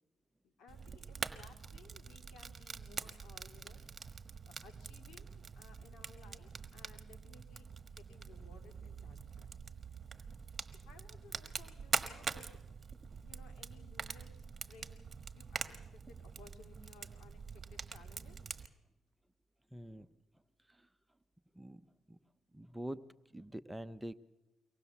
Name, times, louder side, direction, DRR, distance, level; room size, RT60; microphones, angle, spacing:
voice 1, 0.4-3.9 4.5-9.6 10.7-12.6 13.2-18.4, left 4 dB, 75° left, 4 dB, 3.0 m, -60 dB
Fire, 0.7-18.7, right 5 dB, 35° right, 1.3 m, -44 dB
voice 2, 19.7-20.1 20.7-20.9 21.5-21.8 22.1-22.2 22.5-23.1 23.3-24.1, right 1 dB, 10° right, 12 dB, 0.6 m, -45 dB
24.0 x 18.5 x 7.1 m, 1.0 s
cardioid pair, 90°, 0 cm